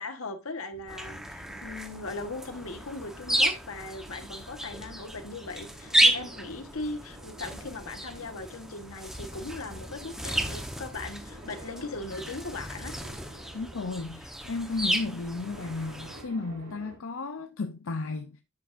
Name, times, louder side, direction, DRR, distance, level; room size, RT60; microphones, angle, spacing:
voice 1, 0.0-12.9, left 3 dB, 90° left, 1.4 m, -39 dB
sound 1, 0.7-17.0, right 1 dB, 90° right, 5.2 m, -51 dB
sound 2, 0.9-16.2, right 1 dB, ahead, 1.0 m, -32 dB
voice 2, 13.5-18.4, left 3 dB, 70° left, 0.6 m, -34 dB
10.5 x 7.3 x 2.5 m
head